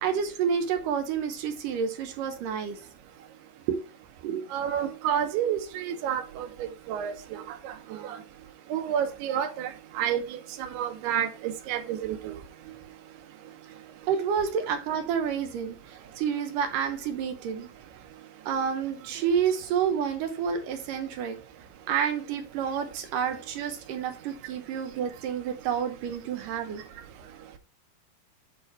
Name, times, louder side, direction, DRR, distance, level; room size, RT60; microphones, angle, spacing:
voice 1, 0.0-2.8 3.7-3.8 4.2-4.4 14.1-17.7 18.5-21.4 21.9-26.8, right 7 dB, 70° right, 2.2 m, -29 dB
voice 2, 4.5-6.5 6.9-7.1 7.9-8.0 8.7-9.7 10.0-10.2 10.6-12.3, right 9 dB, 90° right, 2.9 m, -29 dB
8.5 x 4.1 x 4.3 m
omnidirectional pair, 4.5 m